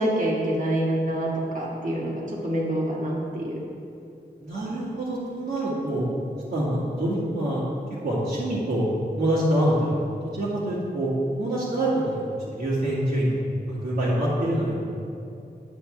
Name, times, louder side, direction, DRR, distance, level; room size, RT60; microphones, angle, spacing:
voice 1, 0.0-3.6, right 1 dB, 55° right, -4 dB, 1.8 m, -26 dB
voice 2, 4.4-6.0 6.5-7.7 8.0-8.9 9.2-9.9 10.2-11.1 11.4-12.2 12.5-13.4 13.6-14.9, right 1 dB, 80° right, -12 dB, 2.2 m, -25 dB
10.0 x 8.1 x 3.4 m, 2.6 s
wide cardioid pair, 115°, 17 cm